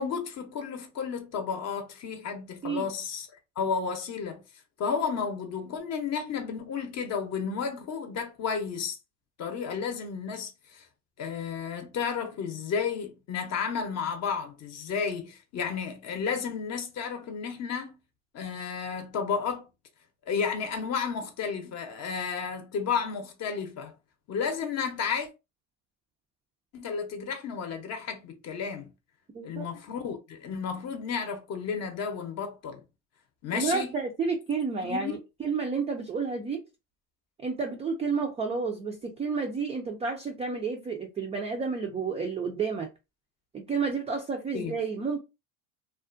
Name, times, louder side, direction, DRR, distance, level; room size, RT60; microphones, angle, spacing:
voice 1, 0.0-3.3 3.6-4.4 4.8-9.0 9.4-10.9 11.2-18.0 18.3-19.7 20.3-23.9 24.3-25.3 26.7-28.9 29.4-32.8 33.4-33.9 34.8-35.2 44.5-44.7, left 6 dB, 40° left, 0.7 m, -32 dB
voice 2, 29.3-29.7 33.5-36.6 37.4-42.9 43.5-45.2, right 5 dB, 15° right, 0.3 m, -31 dB
2.4 x 2.1 x 2.4 m
supercardioid pair, 100°, 40 cm